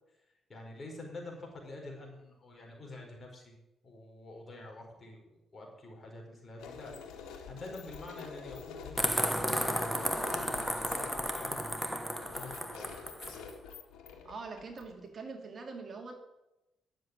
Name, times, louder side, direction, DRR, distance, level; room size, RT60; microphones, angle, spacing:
voice 1, 0.5-3.6 3.8-10.4 10.8-12.9, left 2 dB, 35° left, 0 dB, 4.7 m, -47 dB
sound 1, 6.6-15.1, left 6 dB, 90° left, 2.0 m, -47 dB
sound 2, 9.0-13.4, equal, ahead, 1.4 m, -33 dB
voice 2, 14.2-16.1, right 4 dB, 45° right, 3 dB, 2.6 m, -43 dB
11.0 x 7.6 x 9.4 m, 0.94 s
cardioid pair, 90°, 0 cm